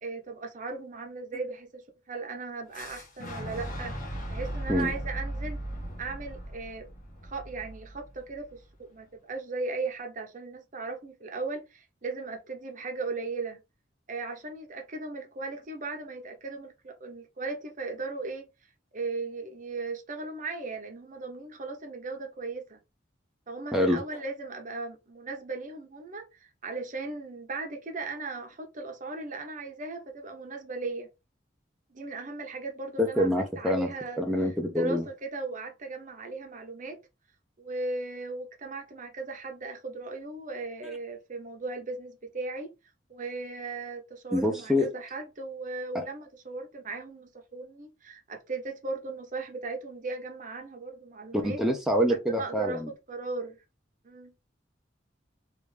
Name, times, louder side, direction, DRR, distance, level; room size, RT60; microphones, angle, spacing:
voice 1, 0.0-3.9 4.3-5.6 6.0-6.9 7.2-13.6 14.1-18.5 18.9-22.8 23.5-31.1 31.9-37.0 37.6-42.7 43.1-51.6 52.1-53.6 54.0-54.3, right 3 dB, 45° right, 0.8 m, -37 dB
Boom, 2.7-8.6, right 1 dB, 45° left, 1.3 m, -38 dB
voice 2, 33.0-33.9 34.2-35.0 44.3-44.9 45.9-46.0 51.3-52.9, equal, ahead, 0.6 m, -26 dB
3.3 x 2.6 x 3.3 m
head